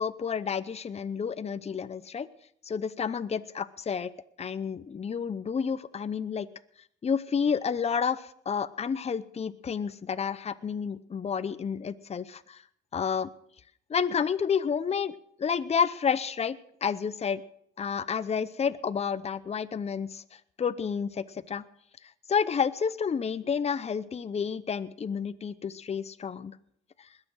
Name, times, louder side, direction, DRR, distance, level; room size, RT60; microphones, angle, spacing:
voice 1, 0.0-2.3 2.6-4.1 4.4-6.5 7.0-12.6 12.9-13.3 13.9-17.4 17.8-21.6 22.3-26.6 27.0-27.1, left 6 dB, 30° left, 13 dB, 0.7 m, -30 dB
21.0 x 7.7 x 6.2 m, 0.67 s
cardioid pair, 90°, 20 cm